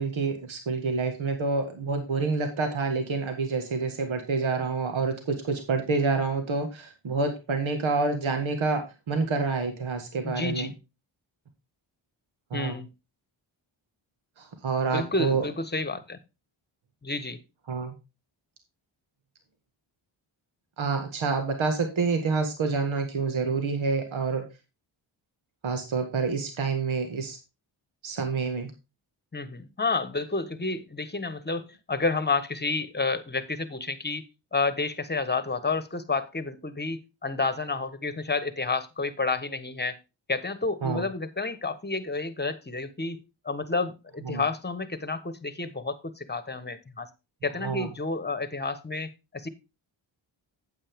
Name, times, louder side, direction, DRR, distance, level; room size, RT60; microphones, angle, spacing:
voice 1, 0.0-10.7 12.5-12.8 14.4-15.4 17.7-17.9 20.8-24.4 25.6-27.4 28.0-28.7 40.8-41.0 44.3-44.4 47.6-47.9, right 4 dB, 70° right, 6 dB, 1.9 m, -28 dB
voice 2, 10.2-10.7 12.5-12.9 14.9-16.2 17.0-17.4 29.3-34.2 34.5-40.0 40.3-43.2 43.4-47.1 47.4-49.5, left 3 dB, 20° left, 13 dB, 1.3 m, -30 dB
8.8 x 8.1 x 3.6 m, 0.27 s
cardioid pair, 55°, 49 cm